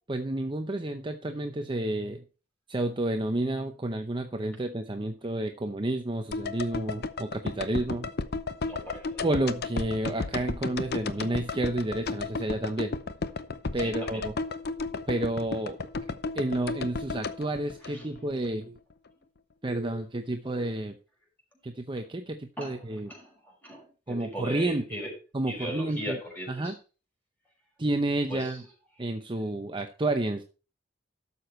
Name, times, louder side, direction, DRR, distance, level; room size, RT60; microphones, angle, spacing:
voice 1, 0.1-2.2 2.7-8.1 9.2-12.9 13.7-14.3 15.1-15.8 16.3-18.8 19.6-20.9 21.6-23.1 24.1-25.0 25.3-26.2 26.5-26.8 27.8-28.6 29.0-30.4, right 1 dB, 25° right, 6 dB, 0.8 m, -30 dB
sound 1, 6.3-18.5 18.8-18.9, left 3 dB, 60° left, 0.7 m, -34 dB
voice 2, 8.6-9.2 13.8-14.2 17.8-18.0 22.6-23.3 23.6-25.1 25.5-26.7 28.3-28.6, equal, 10° left, -1 dB, 5.6 m, -38 dB
12.5 x 6.9 x 4.3 m, 0.34 s
head